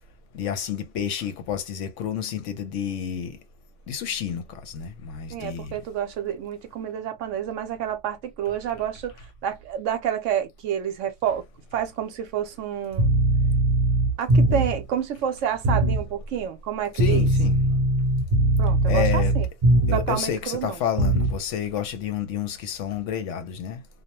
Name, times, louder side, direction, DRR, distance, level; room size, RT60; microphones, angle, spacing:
voice 1, 0.3-3.4 3.9-5.8 16.9-17.6 18.9-19.3 19.9-23.8, left 8 dB, 70° left, 0.9 m, -30 dB
voice 2, 5.3-9.1 9.4-11.4 11.7-13.1 14.2-17.3 18.6-19.5 19.9-20.8, right 9 dB, 70° right, 0.9 m, -29 dB
sound 1, 12.9-14.8 15.6-16.0 17.0-20.2 21.0-21.4, right 1 dB, 35° right, 0.6 m, -20 dB
2.3 x 2.1 x 2.8 m
omnidirectional pair, 1.4 m